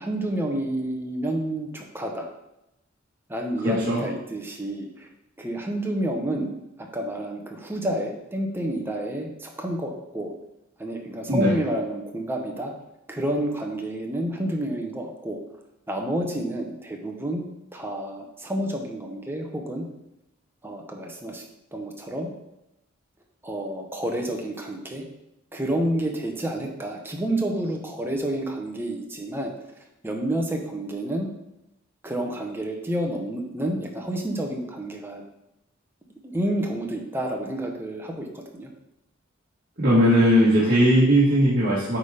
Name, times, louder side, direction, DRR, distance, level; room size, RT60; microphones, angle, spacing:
voice 1, 0.0-2.3 3.3-5.1 5.4-10.3 10.8-12.7 13.1-15.4 15.9-19.9 20.6-21.4 21.7-22.3 23.4-25.0 25.5-29.5 30.0-31.3 32.0-35.2 36.2-38.7, right 1 dB, 10° right, 1 dB, 1.0 m, -29 dB
voice 2, 3.6-4.0 11.3-11.5 39.8-42.0, equal, 50° right, -8 dB, 1.8 m, -19 dB
8.6 x 3.7 x 5.1 m, 0.88 s
head